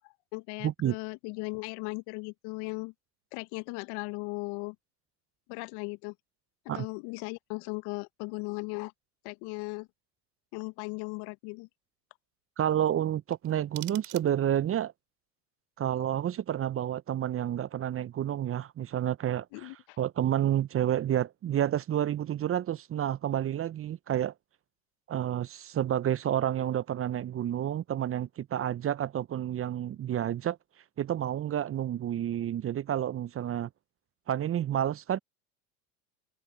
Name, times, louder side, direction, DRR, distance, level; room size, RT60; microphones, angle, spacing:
voice 1, 0.0-2.9 3.3-4.8 5.5-6.1 6.6-8.9 9.2-9.9 10.5-11.7 19.5-20.0, left 28 dB, 55° left, 1.0 m, -37 dB
voice 2, 0.6-1.0 6.7-6.9 12.6-14.9 15.8-24.3 25.1-30.6 31.0-33.7 34.3-35.2, right 11 dB, 30° right, 0.8 m, -30 dB
sound 1, 13.3-14.8, right 23 dB, 70° right, 3.8 m, -47 dB
hypercardioid pair, 75°, 47 cm